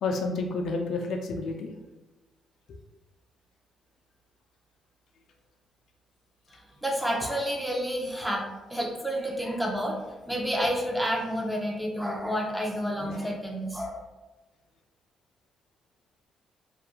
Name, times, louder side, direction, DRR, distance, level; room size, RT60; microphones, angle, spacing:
voice 1, 0.0-1.7 13.0-13.3, left 3 dB, 70° left, 3 dB, 0.3 m, -30 dB
voice 2, 6.5-10.0 10.3-14.0, equal, 5° right, -1 dB, 0.6 m, -30 dB
2.4 x 2.3 x 2.7 m, 1.1 s
cardioid pair, 90°, 0 cm